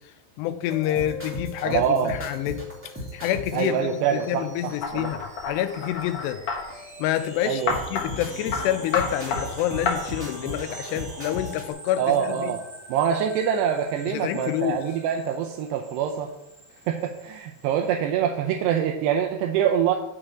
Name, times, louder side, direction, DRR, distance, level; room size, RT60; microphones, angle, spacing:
voice 1, 0.4-2.7 3.1-6.4 7.0-12.6 14.1-14.8, left 12 dB, 80° left, 10 dB, 2.6 m, -28 dB
sound 1, 0.7-4.7 5.2-5.3 5.7-6.4 6.7-11.7, equal, 5° right, 0.8 m, -38 dB
sound 2, 1.7-17.9, right 2 dB, 30° right, 2.4 m, -45 dB
voice 2, 1.7-2.1 3.5-5.1 7.5-7.8 12.0-12.6 12.9-16.3 16.9-20.0, right 8 dB, 80° right, 3 dB, 2.7 m, -25 dB
sound 3, 4.8-6.6 7.7-8.1 8.5-8.7 8.9-9.4 9.9-10.0, left 5 dB, 65° left, 1.7 m, -28 dB
6.9 x 5.4 x 7.1 m, 0.89 s
omnidirectional pair, 5.0 m